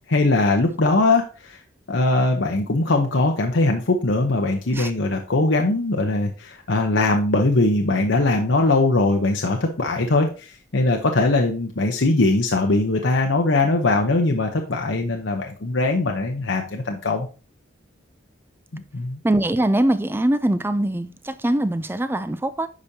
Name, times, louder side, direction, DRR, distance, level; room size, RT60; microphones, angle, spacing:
voice 1, 0.1-1.6 1.9-17.3 18.7-19.2, left 2 dB, 70° left, 0.9 m, -21 dB
voice 2, 19.2-22.7, right 1 dB, 10° right, 0.4 m, -22 dB
9.8 x 5.3 x 2.8 m
head